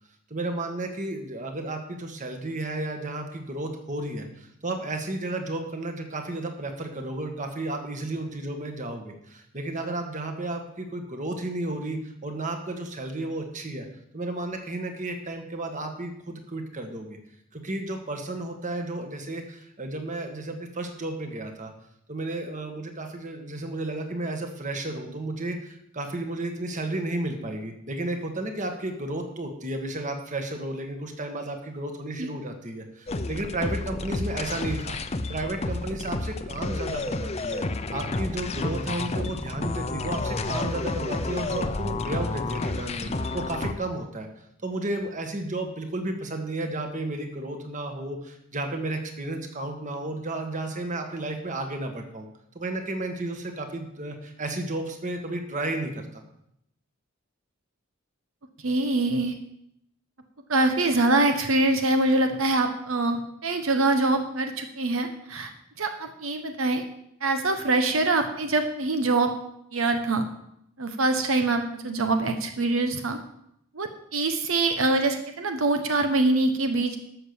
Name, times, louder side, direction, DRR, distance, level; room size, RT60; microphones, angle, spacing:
voice 1, 0.3-13.9 14.1-17.2 17.5-21.7 22.1-37.6 37.9-44.3 44.6-52.3 52.5-56.2, right 2 dB, 40° right, 4 dB, 1.7 m, -33 dB
sound 1, 33.1-43.7, left 2 dB, 30° left, 0.7 m, -30 dB
voice 2, 58.6-59.3 60.5-65.5 65.8-66.8 67.2-69.3 69.7-70.3 70.8-73.2 73.7-77.0, right 2 dB, 80° right, 6 dB, 1.0 m, -24 dB
12.5 x 6.6 x 7.1 m, 0.77 s
head